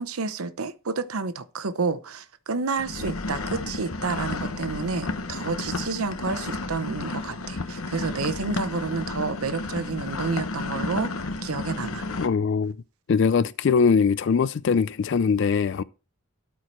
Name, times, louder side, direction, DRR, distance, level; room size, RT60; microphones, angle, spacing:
voice 1, 0.0-12.0, right 4 dB, 80° right, 0.8 m, -30 dB
sound 1, 2.8-12.3, left 3 dB, 75° left, 1.0 m, -32 dB
voice 2, 12.2-12.7 13.1-15.8, left 5 dB, 55° left, 0.4 m, -21 dB
12.5 x 4.7 x 4.4 m
head